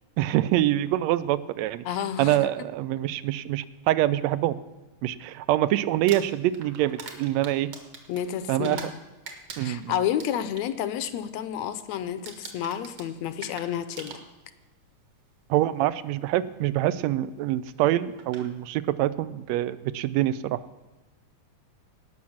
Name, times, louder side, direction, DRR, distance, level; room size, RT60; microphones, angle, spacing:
voice 1, 0.2-1.8 2.2-4.6 5.0-7.8 8.5-8.8 9.6-9.9 15.5-20.6, right 14 dB, 80° right, 17 dB, 1.7 m, -25 dB
voice 2, 1.9-2.4 8.1-8.9 9.6-14.1, left 10 dB, 75° left, 12 dB, 1.8 m, -30 dB
Crumpling crinkling, 5.9-9.0 9.3-10.7 11.0-11.4 11.6-11.9 12.3-14.6 15.6-15.7 17.7-17.8 18.2-18.5, right 5 dB, 55° right, 2.4 m, -43 dB
18.0 x 6.1 x 7.2 m, 1.2 s
omnidirectional pair, 3.3 m